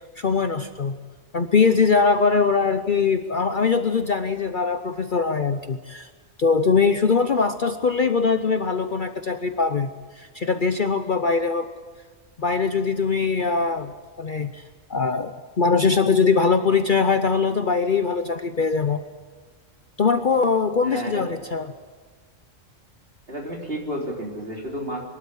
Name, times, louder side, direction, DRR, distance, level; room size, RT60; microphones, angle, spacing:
voice 1, 0.2-1.0 1.3-6.1 6.4-9.9 10.2-11.7 12.4-13.9 14.2-14.6 14.9-19.0 20.0-21.7, left 5 dB, 45° left, 9 dB, 0.8 m, -22 dB
voice 2, 20.8-21.3 23.3-25.0, right 1 dB, 45° right, -1 dB, 4.0 m, -31 dB
23.5 x 12.5 x 9.9 m, 1.4 s
omnidirectional pair, 1.4 m